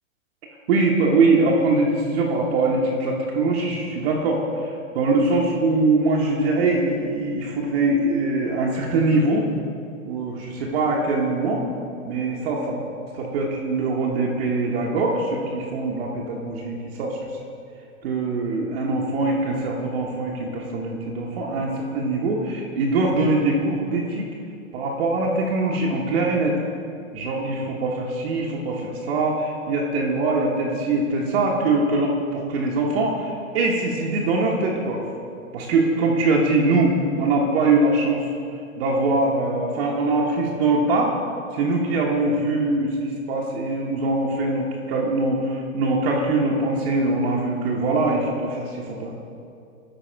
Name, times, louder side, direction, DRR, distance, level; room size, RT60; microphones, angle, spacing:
voice 1, 0.7-9.4 10.1-11.6 12.0-12.8 13.1-17.2 18.0-24.3 24.7-26.6 27.1-35.0 35.5-38.3 38.8-41.1 41.5-49.1, right 2 dB, 50° right, -3 dB, 1.1 m, -22 dB
12.5 x 4.7 x 4.4 m, 2.5 s
hypercardioid pair, 145°, 41 cm